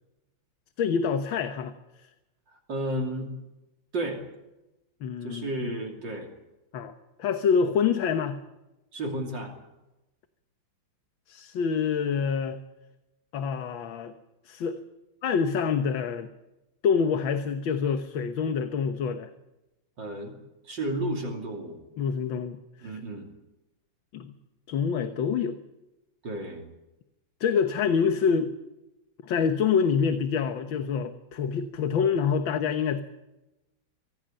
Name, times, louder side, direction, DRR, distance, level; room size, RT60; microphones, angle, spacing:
voice 1, 0.8-2.1 5.0-5.5 6.7-6.9 7.2-8.4 11.3-12.6 13.3-14.1 14.5-14.8 15.2-16.3 16.8-19.3 22.0-22.9 24.1-24.4 24.7-25.6 27.4-28.5 29.2-33.0, left 6 dB, 80° left, 9 dB, 2.0 m, -26 dB
voice 2, 2.5-3.3 3.9-4.2 5.2-6.3 8.9-9.5 20.0-20.4 20.6-21.8 22.8-23.3 26.2-26.7, right 1 dB, 65° right, 2 dB, 3.6 m, -32 dB
24.5 x 16.5 x 8.9 m, 0.98 s
omnidirectional pair, 2.1 m